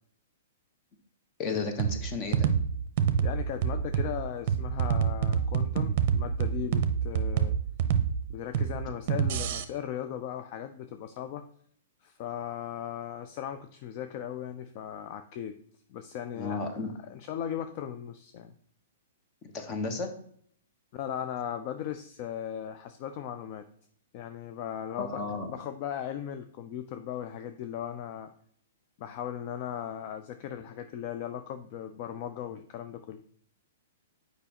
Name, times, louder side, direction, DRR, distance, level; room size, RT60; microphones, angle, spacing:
voice 1, 1.4-2.5 16.3-16.9 19.5-20.1 25.0-25.5, left 4 dB, 30° left, 6 dB, 1.0 m, -33 dB
sound 1, 1.8-9.6, right 7 dB, 50° right, 0.6 m, -27 dB
voice 2, 3.2-7.6 8.3-11.5 12.0-15.6 15.9-18.5 20.9-23.7 24.1-28.3 29.0-33.2, left 10 dB, 45° left, 9 dB, 0.4 m, -37 dB
6.7 x 5.1 x 2.9 m, 0.62 s
hypercardioid pair, 140°, 0 cm